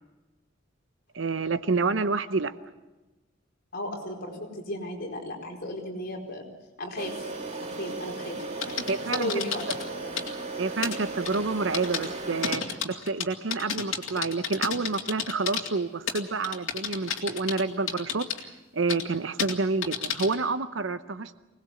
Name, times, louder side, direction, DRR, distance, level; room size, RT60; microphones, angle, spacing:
voice 1, 1.1-2.5 8.9-9.3 10.6-18.3 18.7-21.4, right 3 dB, 70° right, 12 dB, 0.8 m, -28 dB
voice 2, 3.7-6.4 6.8-7.3 7.6-8.4 8.7-10.1, left 1 dB, 50° left, 0 dB, 4.6 m, -35 dB
sound 1, 7.0-12.6, right 3 dB, 35° right, 1.9 m, -36 dB
sound 2, 8.4-9.8 10.2-10.3 10.8-11.0 11.2-11.4 11.7-12.1 12.4-15.7 16.1-17.6 17.9-18.4 18.9-19.0 19.4-19.5 19.8-20.3, left 7 dB, 80° left, 2.6 m, -31 dB
25.0 x 19.5 x 7.8 m, 1.1 s
head